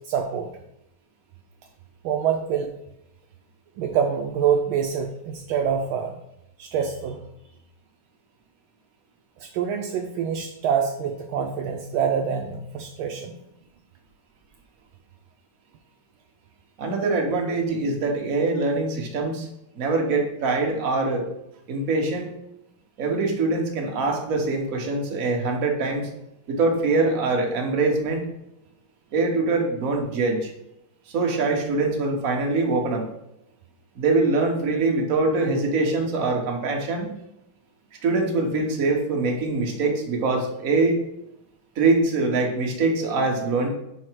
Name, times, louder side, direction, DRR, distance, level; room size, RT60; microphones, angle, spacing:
voice 1, 0.1-0.5 2.0-2.7 3.8-6.2 6.6-7.2 9.4-13.3, right 7 dB, 75° right, 3 dB, 1.3 m, -25 dB
voice 2, 16.8-19.5 19.7-21.3 21.7-22.3 23.0-26.1 26.5-28.2 29.1-30.5 31.1-33.1 34.0-37.1 38.0-41.0 41.7-43.7, right 3 dB, 45° right, 1 dB, 1.3 m, -23 dB
5.7 x 4.6 x 4.5 m, 0.84 s
omnidirectional pair, 2.4 m